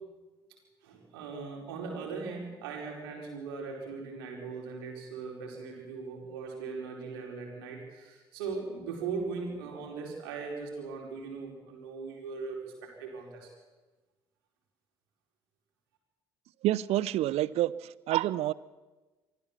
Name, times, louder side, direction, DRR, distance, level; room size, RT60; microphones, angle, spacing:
voice 1, 0.8-13.5, right 4 dB, 75° right, 0 dB, 4.8 m, -39 dB
voice 2, 16.6-18.5, right 14 dB, 55° right, 21 dB, 0.7 m, -28 dB
24.5 x 15.0 x 7.3 m, 1.2 s
figure-of-eight pair, 55°, 13 cm